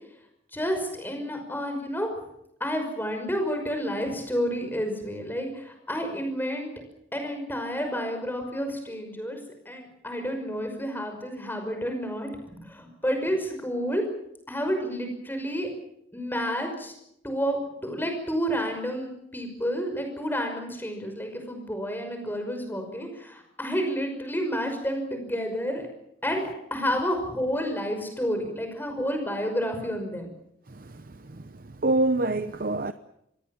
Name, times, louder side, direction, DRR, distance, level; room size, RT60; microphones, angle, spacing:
voice 1, 0.5-2.1 2.6-6.7 7.1-9.4 9.7-14.0 14.5-15.7 16.1-16.9 17.2-25.9 26.2-30.3, equal, 10° left, 5.7 m, -30 dB
voice 2, 30.7-31.0 31.3-31.4 31.8-32.9, right 2 dB, 45° right, 0.8 m, -25 dB
27.0 x 20.5 x 7.2 m
head